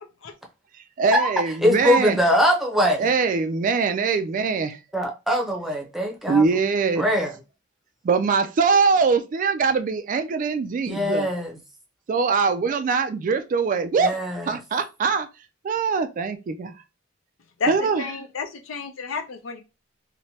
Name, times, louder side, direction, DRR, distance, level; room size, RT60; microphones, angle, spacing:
voice 1, 1.0-2.2 3.0-4.8 6.3-7.0 8.0-11.3 12.1-14.2 14.5-15.3 15.6-16.7 17.7-18.0, right 5 dB, 40° right, 0.3 m, -22 dB
voice 2, 1.6-3.1 4.9-6.4 7.0-7.3 10.9-11.6 14.0-14.5, equal, ahead, 0.7 m, -22 dB
voice 3, 17.6-19.6, left 4 dB, 75° left, 0.6 m, -30 dB
3.1 x 2.1 x 2.8 m
head